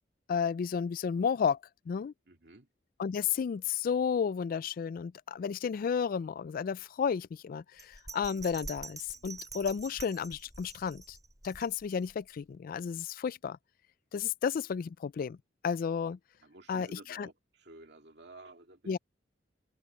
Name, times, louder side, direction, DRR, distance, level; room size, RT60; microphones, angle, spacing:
voice 1, 0.3-1.6 1.9-2.1 3.0-11.2 11.4-13.6 14.1-15.4 15.6-16.2 16.7-17.3 18.9-19.0, left 6 dB, 50° left, 0.3 m, -32 dB
voice 2, 2.3-2.7 9.1-9.4 16.4-19.0, right 2 dB, 65° right, 2.5 m, -53 dB
Bell, 7.8-12.1 12.5-12.6, right 4 dB, 20° right, 5.9 m, -46 dB
head